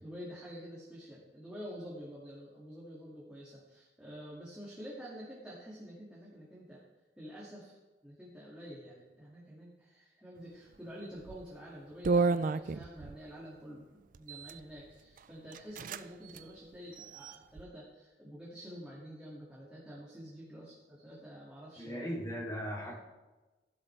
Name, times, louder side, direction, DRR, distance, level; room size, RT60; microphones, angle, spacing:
voice 1, 0.0-6.9 7.2-7.8 8.0-22.1 22.8-22.9, equal, 5° right, -7 dB, 2.2 m, -48 dB
sound 1, 11.2-11.5 12.0-13.2 14.1-14.6 15.2-15.3 15.5-16.0 16.3-16.4 16.9-17.6, right 4 dB, 50° right, 0.4 m, -32 dB
voice 2, 21.8-22.9, equal, 20° left, -4 dB, 3.0 m, -38 dB
15.5 x 11.5 x 3.3 m, 1.2 s
head